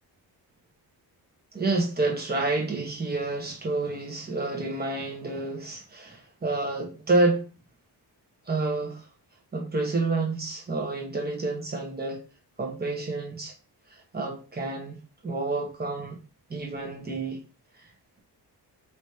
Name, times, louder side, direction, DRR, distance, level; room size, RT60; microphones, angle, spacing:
voice 1, 1.5-7.4 8.5-9.0 9.5-12.2 12.6-13.5 13.9-15.0 15.2-16.2 16.5-17.4, right 2 dB, 25° right, 0 dB, 1.2 m, -29 dB
4.9 x 3.1 x 2.8 m, 0.33 s
wide cardioid pair, 145°, 41 cm